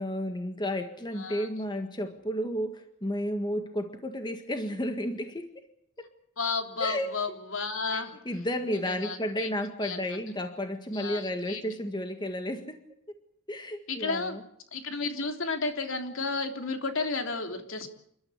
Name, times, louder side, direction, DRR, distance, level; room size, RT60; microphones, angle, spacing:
voice 1, 0.0-5.5 6.0-6.1 6.8-7.2 7.9-12.8 13.5-14.4, equal, 20° left, 6 dB, 1.7 m, -32 dB
voice 2, 1.2-1.5 6.4-8.1 8.7-9.5 9.8-10.0 10.9-11.6 13.9-14.4 14.7-17.9, left 3 dB, 70° left, 5 dB, 3.3 m, -32 dB
29.0 x 13.0 x 9.6 m, 0.72 s
head